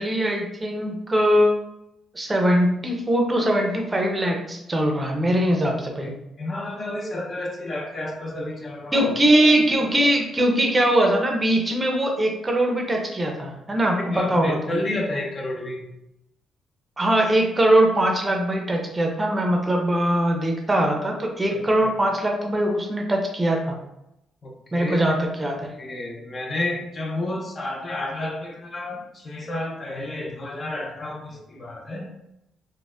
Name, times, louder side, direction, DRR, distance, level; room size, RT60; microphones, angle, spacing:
voice 1, 0.0-1.6 2.1-6.1 8.9-14.6 17.0-23.8 24.7-25.7, right 1 dB, 20° right, 2 dB, 0.6 m, -21 dB
voice 2, 6.4-9.1 14.1-15.9 21.5-21.9 24.4-25.0 25.4-25.5 25.8-32.1, left 1 dB, 40° left, 1 dB, 0.6 m, -31 dB
4.0 x 2.1 x 2.4 m, 0.84 s
cardioid pair, 90°, 0 cm